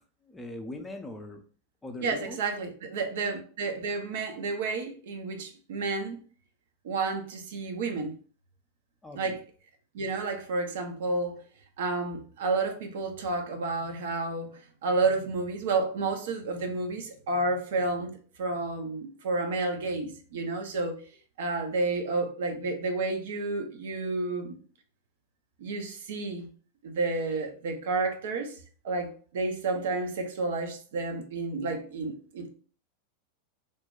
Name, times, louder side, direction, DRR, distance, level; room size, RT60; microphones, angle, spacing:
voice 1, 0.3-1.4 1.8-2.4 9.0-9.3, left 2 dB, 10° left, 0.5 m, -40 dB
voice 2, 2.0-6.2 6.8-8.1 9.1-9.4 9.9-11.4 11.8-21.0 21.4-24.6 25.6-26.5 26.8-28.6 28.8-32.5, right 3 dB, 55° right, 0.6 m, -31 dB
2.6 x 2.2 x 3.6 m
figure-of-eight pair, 90°, 0 cm